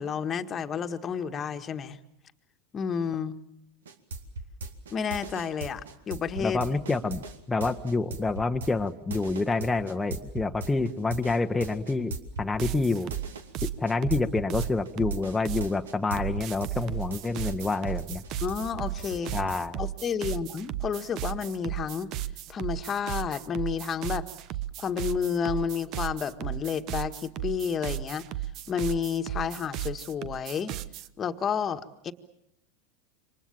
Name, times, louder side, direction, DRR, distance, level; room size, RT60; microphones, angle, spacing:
voice 1, 0.0-2.0 2.7-3.3 4.9-6.6 18.4-19.3 19.8-22.1 22.5-24.3 24.8-28.2 28.7-30.7 31.2-32.1, left 7 dB, 30° left, 8 dB, 1.6 m, -31 dB
sound 1, 3.8-16.7 17.0-19.6, right 2 dB, 75° right, 2.3 m, -39 dB
voice 2, 6.4-12.1 12.4-13.1 13.6-18.2 19.3-19.8, left 3 dB, 10° left, 4 dB, 1.2 m, -28 dB
sound 2, 12.6-15.7 16.2-31.1, right 13 dB, 45° right, 1.0 m, -35 dB
28.0 x 25.0 x 7.4 m, 0.78 s
figure-of-eight pair, 90°, 0 cm